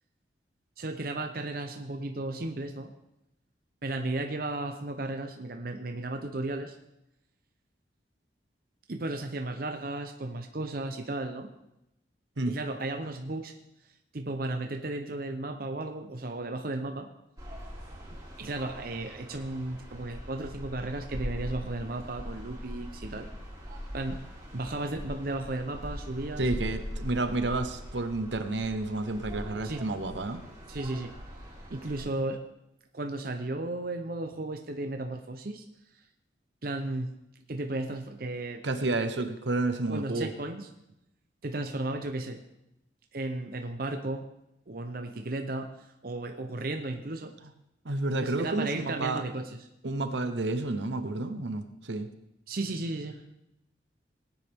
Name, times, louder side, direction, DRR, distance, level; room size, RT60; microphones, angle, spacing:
voice 1, 0.8-2.9 3.8-6.8 8.9-11.5 12.5-13.5 14.1-17.1 18.4-23.3 23.9-24.2 24.5-26.5 29.6-29.8 30.7-31.1 31.7-32.4 32.9-35.6 36.6-37.1 37.5-38.7 39.9-40.7 41.4-42.4 43.1-44.2 44.7-47.4 48.1-49.5 52.5-53.2, right 2 dB, 50° right, 5 dB, 0.8 m, -34 dB
sound 1, 17.4-32.0, equal, 20° right, 3.0 m, -41 dB
voice 2, 26.4-30.4 38.6-40.3 47.8-49.2 49.8-52.1, right 2 dB, 75° right, 9 dB, 1.0 m, -30 dB
18.0 x 9.8 x 3.6 m, 0.87 s
head